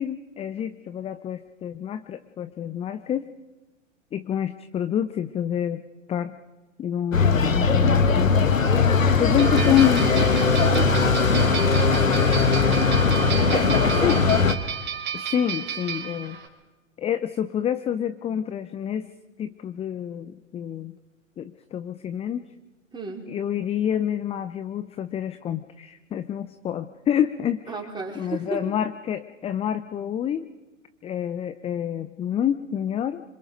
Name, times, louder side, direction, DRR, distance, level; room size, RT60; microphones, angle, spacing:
voice 1, 0.0-3.3 4.1-5.8 6.1-6.4 6.8-8.4 9.2-10.1 14.0-14.6 15.1-16.4 17.0-19.1 19.4-20.9 21.4-22.5 23.3-27.7 28.1-30.5 31.0-33.2, left 9 dB, 15° left, 11 dB, 0.7 m, -27 dB
sound 1, 7.1-14.6, left 4 dB, 80° left, 1.5 m, -20 dB
voice 2, 9.4-14.2 22.9-23.2 27.7-28.6, right 4 dB, 10° right, 0 dB, 4.7 m, -35 dB
sound 2, 9.4-16.5, right 8 dB, 25° right, 4.2 m, -33 dB
26.5 x 26.0 x 5.2 m, 1.2 s
figure-of-eight pair, 100°, 39 cm